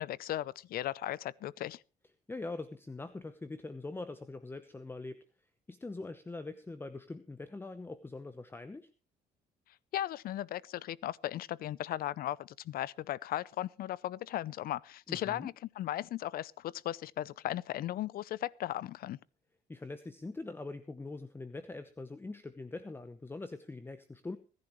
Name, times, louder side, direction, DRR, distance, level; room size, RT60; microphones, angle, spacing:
voice 1, 0.0-1.8 9.9-19.2, left 13 dB, 60° left, 0.6 m, -37 dB
voice 2, 2.3-5.2 5.7-8.9 15.1-15.5 19.7-24.4, left 3 dB, 15° left, 0.9 m, -43 dB
24.5 x 11.0 x 3.1 m
cardioid pair, 110°, 17 cm